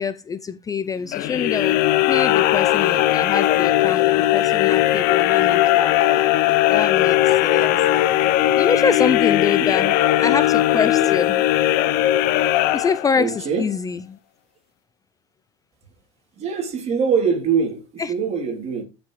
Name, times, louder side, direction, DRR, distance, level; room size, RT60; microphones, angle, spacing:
voice 1, 0.0-1.8 2.1-6.2 6.7-11.4 12.7-14.2 18.0-18.1, left 6 dB, 20° left, 0.5 m, -25 dB
sound 1, 1.1-13.4, left 15 dB, 60° left, 0.8 m, -18 dB
sound 2, 2.8-8.0, left 6 dB, 40° left, 2.2 m, -35 dB
voice 2, 13.2-13.7 16.4-18.8, right 6 dB, 35° right, 3.2 m, -23 dB
14.5 x 6.0 x 3.2 m
supercardioid pair, 115°, 18 cm